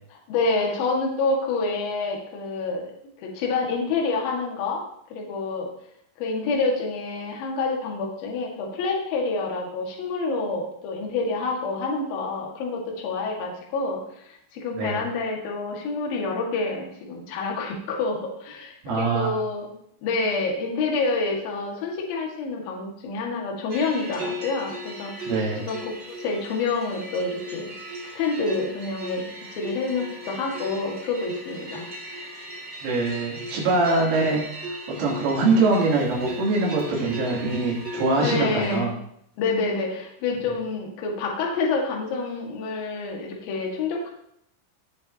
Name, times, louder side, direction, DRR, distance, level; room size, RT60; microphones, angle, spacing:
voice 1, 0.1-2.9 3.2-4.8 5.1-5.7 6.2-19.7 20.0-27.7 28.1-29.3 29.5-32.3 38.2-38.9 39.4-44.1, left 3 dB, 60° left, -1 dB, 3.2 m, -28 dB
voice 2, 18.8-19.4 25.3-25.6 32.8-34.4 35.0-38.9, right 3 dB, 85° right, -5 dB, 5.6 m, -23 dB
sound 1, 23.7-38.8, equal, 55° right, 0.7 m, -37 dB
18.0 x 7.0 x 2.9 m, 0.73 s
omnidirectional pair, 5.6 m